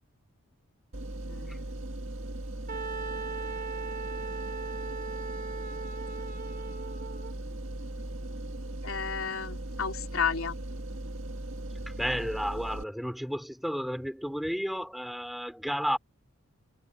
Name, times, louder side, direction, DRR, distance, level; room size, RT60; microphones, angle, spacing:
sound 1, 0.9-12.8, right 1 dB, 65° right, 1.9 m, -38 dB
voice 1, 1.2-1.7 8.8-10.6, left 6 dB, 75° left, 3.3 m, -32 dB
Wind instrument woodwind instrument, 2.7-7.3, right 4 dB, 40° right, 1.2 m, -38 dB
voice 2, 11.9-16.0, equal, ahead, 2.8 m, -32 dB
head